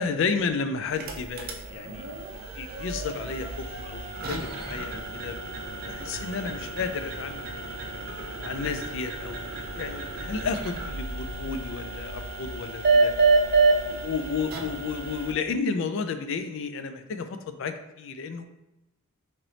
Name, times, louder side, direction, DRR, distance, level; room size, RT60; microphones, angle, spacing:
voice 1, 0.0-5.5 5.8-7.8 8.4-13.1 13.9-18.4, left 5 dB, 65° left, 8 dB, 0.3 m, -32 dB
sound 1, 0.9-15.3, right 3 dB, 45° right, 0.5 m, -29 dB
3.2 x 2.9 x 3.9 m, 0.92 s
head